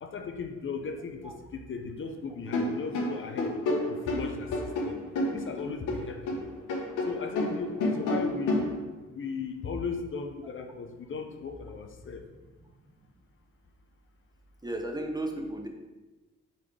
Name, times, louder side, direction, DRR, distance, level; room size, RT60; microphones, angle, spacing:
voice 1, 0.0-3.5 3.9-4.5 4.8-5.0 5.3-6.4 7.0-8.7 9.1-12.2, left 5 dB, 40° left, 5 dB, 0.7 m, -36 dB
sound 1, 2.5-6.4 6.7-8.7, left 1 dB, 85° left, 1.2 m, -29 dB
voice 2, 14.6-15.7, right 1 dB, 15° right, 3 dB, 0.7 m, -34 dB
7.6 x 4.1 x 3.3 m, 1.2 s
cardioid pair, 90°, 30 cm